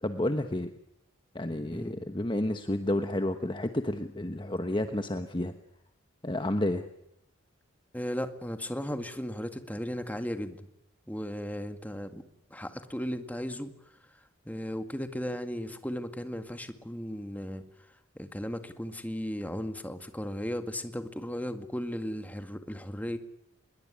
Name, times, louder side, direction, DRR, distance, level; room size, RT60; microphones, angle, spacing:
voice 1, 0.0-0.7 1.3-5.5 6.2-6.9, left 1 dB, 25° left, 8 dB, 1.2 m, -30 dB
voice 2, 7.9-10.7 11.1-12.2 12.5-13.7 14.5-17.6 18.2-23.2, equal, 10° left, 8 dB, 2.0 m, -36 dB
25.0 x 22.0 x 9.8 m, 0.79 s
head